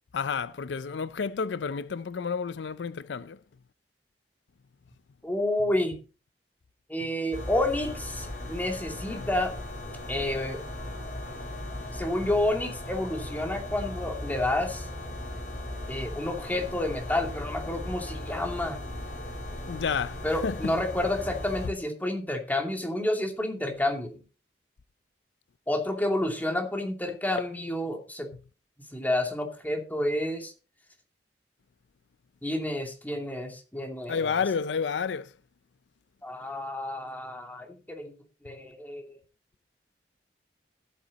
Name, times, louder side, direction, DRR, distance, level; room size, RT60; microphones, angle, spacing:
voice 1, 0.1-3.4 9.2-9.3 19.7-20.7 27.4-27.5 34.1-35.3, left 6 dB, 85° left, 0.5 m, -30 dB
voice 2, 5.2-6.0 6.9-9.6 10.1-10.6 11.9-14.8 15.9-18.8 20.2-24.1 25.7-28.3 28.9-30.5 32.4-34.4 36.2-38.1 38.4-39.1, left 1 dB, 10° left, 2.5 m, -30 dB
sound 1, 7.3-21.7, left 1 dB, 45° left, 5.7 m, -37 dB
13.5 x 8.6 x 4.1 m
head